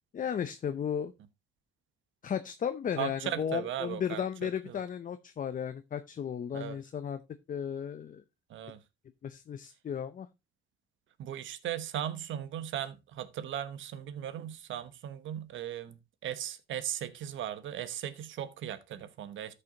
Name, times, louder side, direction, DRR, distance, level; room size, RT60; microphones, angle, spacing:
voice 1, 0.1-1.1 2.2-7.2 7.5-8.2 9.2-10.3, left 8 dB, 40° left, 0.6 m, -34 dB
voice 2, 3.0-4.8 6.5-6.8 8.5-8.8 11.2-19.5, right 10 dB, 75° right, 1.0 m, -37 dB
13.5 x 5.6 x 2.8 m
cardioid pair, 90°, 20 cm